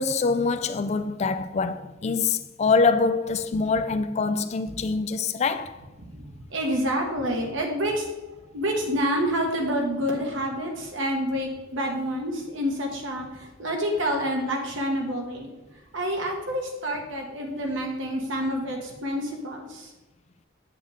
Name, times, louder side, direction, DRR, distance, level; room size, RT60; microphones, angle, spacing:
voice 1, 0.0-5.8, left 4 dB, 35° left, 0.3 m, -24 dB
voice 2, 6.1-15.5 15.9-19.9, equal, 70° right, 1.7 m, -28 dB
8.5 x 7.6 x 3.6 m
head